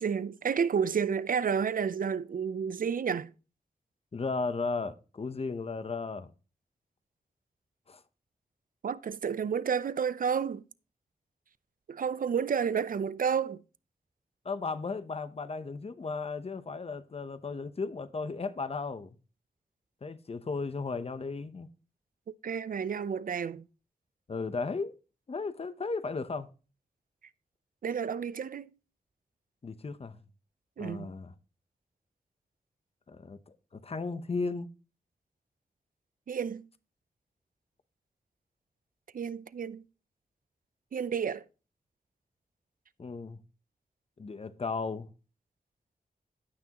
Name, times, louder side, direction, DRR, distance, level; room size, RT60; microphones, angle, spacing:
voice 1, 0.0-3.3 8.8-10.6 11.9-13.6 22.4-23.6 27.8-28.7 30.8-31.1 36.3-36.7 39.1-39.8 40.9-41.4, right 7 dB, 65° right, 0.5 m, -30 dB
voice 2, 4.1-6.3 7.9-8.0 14.4-19.1 20.0-21.7 24.3-24.9 25.3-26.5 29.6-30.2 30.8-31.3 33.1-34.7 43.0-43.4 44.2-45.1, left 4 dB, 40° left, 0.7 m, -35 dB
16.0 x 6.1 x 2.9 m
wide cardioid pair, 105°, 15 cm